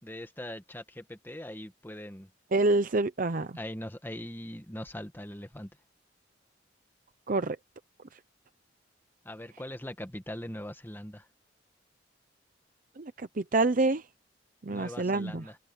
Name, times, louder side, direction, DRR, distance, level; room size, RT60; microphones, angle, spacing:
voice 1, 0.0-2.3 3.5-5.7 9.2-11.3 14.7-15.6, left 1 dB, 10° left, 1.5 m, -41 dB
voice 2, 2.5-3.6 7.3-7.6 13.0-14.0 14.6-15.4, right 2 dB, 45° right, 0.7 m, -27 dB
head